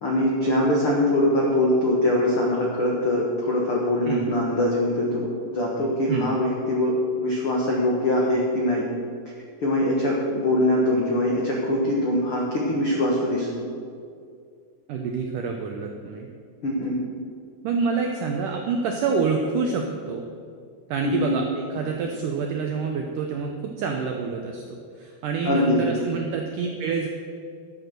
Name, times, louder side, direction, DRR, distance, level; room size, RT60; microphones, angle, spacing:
voice 1, 0.0-8.9 9.6-13.5 16.6-17.0 21.0-21.3 25.4-25.8, left 1 dB, 70° left, -3 dB, 1.3 m, -23 dB
voice 2, 14.9-16.3 17.6-20.3 20.9-27.1, right 5 dB, 80° right, 3 dB, 1.8 m, -27 dB
12.5 x 7.8 x 6.7 m, 2.2 s
omnidirectional pair, 4.8 m